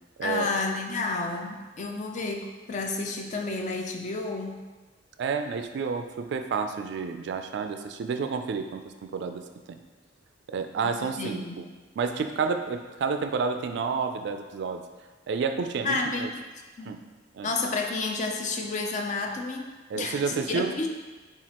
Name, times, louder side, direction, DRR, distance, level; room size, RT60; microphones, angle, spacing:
voice 1, 0.2-4.6 10.8-11.7 15.8-16.4 16.8-16.9 17.4-20.9, left 3 dB, 40° left, 3 dB, 0.4 m, -31 dB
voice 2, 5.2-8.8 9.1-9.4 9.7-9.8 10.5-11.7 12.0-14.8 15.3-16.3 16.9-17.0 17.3-17.5 19.9-20.8, right 5 dB, 65° right, 7 dB, 0.3 m, -30 dB
7.2 x 2.4 x 2.9 m, 1.3 s
head